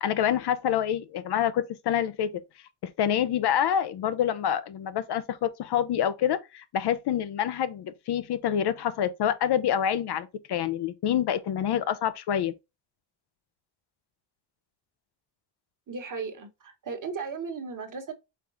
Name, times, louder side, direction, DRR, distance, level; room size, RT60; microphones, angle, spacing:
voice 1, 0.0-2.4 2.8-12.5, left 9 dB, 55° left, 0.7 m, -27 dB
voice 2, 15.9-18.1, right 5 dB, 40° right, 1.3 m, -36 dB
5.3 x 3.6 x 2.6 m
cardioid pair, 80°, 47 cm